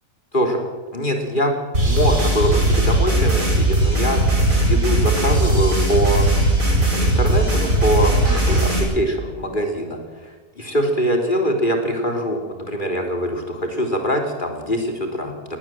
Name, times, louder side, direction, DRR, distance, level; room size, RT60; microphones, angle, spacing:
voice 1, 0.9-1.6 1.8-6.3 6.9-10.0 10.6-15.3, equal, 35° left, 3 dB, 3.4 m, -23 dB
sound 1, 1.7-8.8, right 1 dB, 65° right, 5.9 m, -18 dB
20.0 x 19.0 x 7.5 m, 1.3 s
omnidirectional pair, 1.6 m